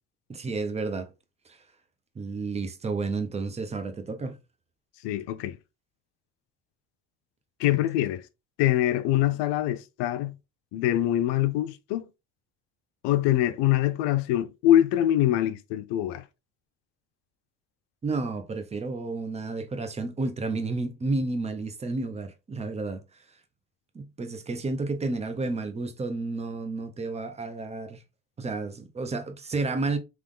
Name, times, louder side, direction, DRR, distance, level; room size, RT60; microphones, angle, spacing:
voice 1, 0.3-1.1 1.5-1.6 2.2-4.4 18.0-23.0 23.9-28.0 28.4-30.0, right 3 dB, 15° right, 0.6 m, -31 dB
voice 2, 5.0-5.6 7.6-8.3 8.6-10.4 10.7-12.1 13.0-16.2, left 13 dB, 85° left, 0.6 m, -24 dB
3.7 x 3.0 x 3.6 m
cardioid pair, 135°, 40 cm